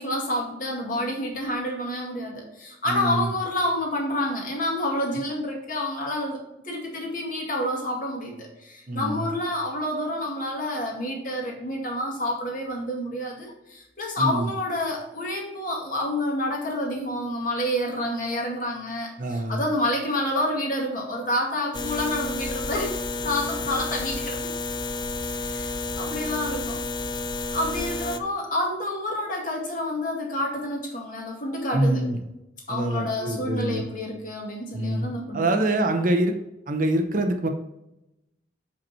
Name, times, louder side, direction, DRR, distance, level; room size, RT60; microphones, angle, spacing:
voice 1, 0.0-23.0 23.2-24.5 25.2-26.8 27.5-32.0 32.7-35.6, left 1 dB, 45° left, -1 dB, 2.0 m, -28 dB
voice 2, 2.9-3.3 8.9-9.3 14.2-14.5 19.2-19.6 31.7-32.2 32.7-33.8 34.7-35.1 35.3-36.4 36.7-37.5, right 1 dB, 45° right, 5 dB, 0.8 m, -25 dB
sound 1, 21.7-28.2, left 3 dB, 25° left, 0.4 m, -31 dB
5.9 x 5.2 x 4.3 m, 0.90 s
head